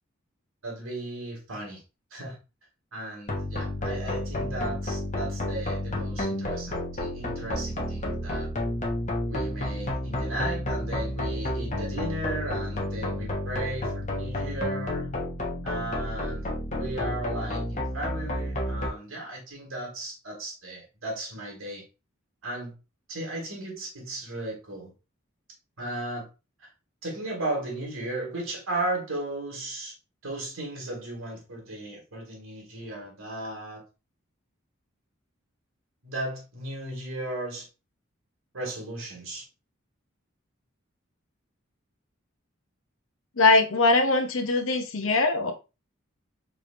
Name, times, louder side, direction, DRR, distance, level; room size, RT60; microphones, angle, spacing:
voice 1, 0.6-1.8 2.1-2.4 2.9-8.5 9.3-15.2 15.6-16.5 16.8-21.8 22.4-22.7 23.1-24.9 25.8-26.3 26.6-26.7 27.0-29.9 30.2-33.8 36.0-37.7 38.5-39.4, right 1 dB, 85° right, 2.2 m, -35 dB
sound 1, 3.3-18.9, left 1 dB, 35° left, 1.0 m, -31 dB
voice 2, 43.4-45.5, left 3 dB, 70° left, 0.8 m, -21 dB
4.8 x 3.4 x 2.5 m
head